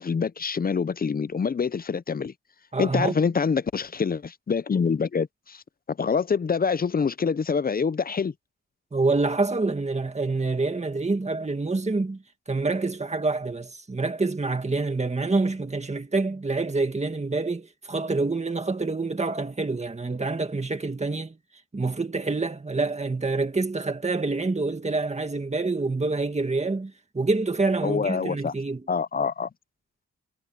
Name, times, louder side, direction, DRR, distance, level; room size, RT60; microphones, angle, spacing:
voice 1, 0.0-2.3 2.8-5.6 5.9-8.3 27.8-28.5 28.9-29.5, left 5 dB, 30° left, 0.4 m, -26 dB
voice 2, 2.7-3.2 8.9-12.2 12.5-21.4 21.7-28.8, right 3 dB, 20° right, 1.8 m, -27 dB
wide cardioid pair, 175°, 30 cm